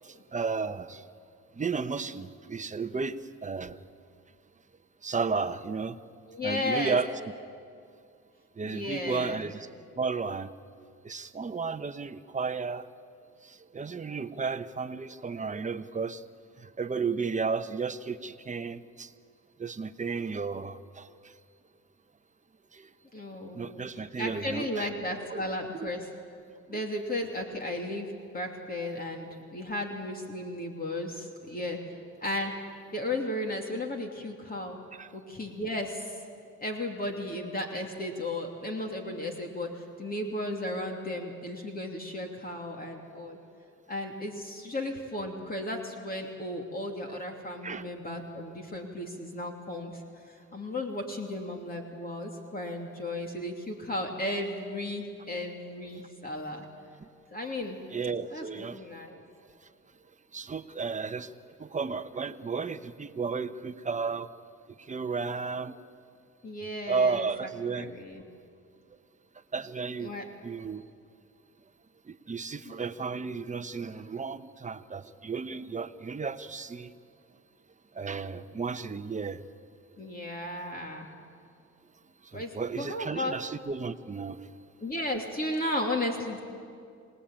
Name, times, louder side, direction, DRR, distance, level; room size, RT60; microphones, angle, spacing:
voice 1, 0.0-1.1 1.5-3.8 5.0-6.0 6.4-7.1 8.6-9.7 10.0-10.5 11.0-12.9 13.4-16.2 16.6-19.1 19.6-21.3 22.7-22.9 23.5-24.9 25.3-25.4 25.8-25.9 26.7-26.8 34.9-35.1 47.1-47.2 47.6-47.9 57.0-57.1 57.9-58.8 60.3-61.3 61.6-64.3 64.8-65.8 66.9-68.0 69.5-70.1 70.4-70.8 72.1-76.9 77.9-79.4 82.2-84.5, right 5 dB, 25° right, 10 dB, 1.0 m, -33 dB
voice 2, 6.3-7.0 8.6-9.4 23.1-23.8 24.2-26.1 26.7-28.1 28.3-32.5 32.9-34.8 35.1-36.2 36.6-43.4 43.9-56.7 57.3-57.8 58.1-59.2 66.4-67.5 67.7-68.2 70.0-70.3 72.6-72.7 80.0-81.1 82.3-83.4 84.8-86.4, left 1 dB, 30° left, 2 dB, 3.0 m, -35 dB
27.5 x 19.0 x 8.9 m, 2.3 s
cardioid pair, 90°, 30 cm